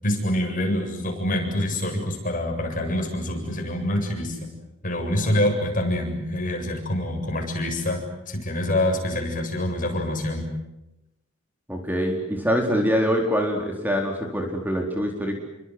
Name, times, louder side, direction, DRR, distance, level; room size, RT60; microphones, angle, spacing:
voice 1, 0.0-4.5 4.8-8.0 8.3-10.5, left 1 dB, 40° left, 3 dB, 7.7 m, -26 dB
voice 2, 11.7-15.4, equal, 10° right, 2 dB, 4.2 m, -24 dB
29.0 x 24.5 x 8.0 m, 0.92 s
head